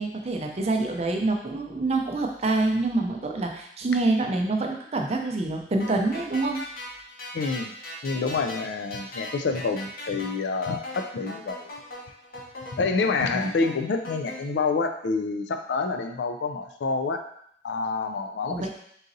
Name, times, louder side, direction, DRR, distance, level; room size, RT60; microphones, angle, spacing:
voice 1, 0.0-6.6 13.3-13.5 18.5-18.7, right 2 dB, 35° right, 2 dB, 0.5 m, -26 dB
sound 1, 5.8-14.4, left 1 dB, 55° left, 1.0 m, -39 dB
voice 2, 7.3-7.7 8.0-11.7 12.7-17.2 17.6-18.7, left 4 dB, 75° left, 6 dB, 0.4 m, -27 dB
4.0 x 3.8 x 2.6 m, 0.68 s
head